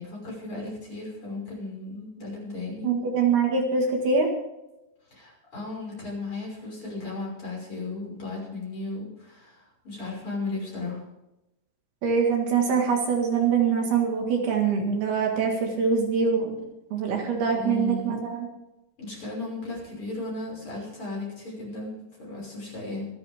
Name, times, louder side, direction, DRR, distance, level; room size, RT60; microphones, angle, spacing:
voice 1, 0.0-2.9 5.1-11.0 17.5-18.2 19.0-23.1, left 2 dB, 30° left, -3 dB, 6.6 m, -35 dB
voice 2, 2.8-4.3 12.0-16.5 16.9-18.5, right 5 dB, 65° right, 1 dB, 3.7 m, -24 dB
26.0 x 10.0 x 3.6 m, 0.93 s
omnidirectional pair, 5.0 m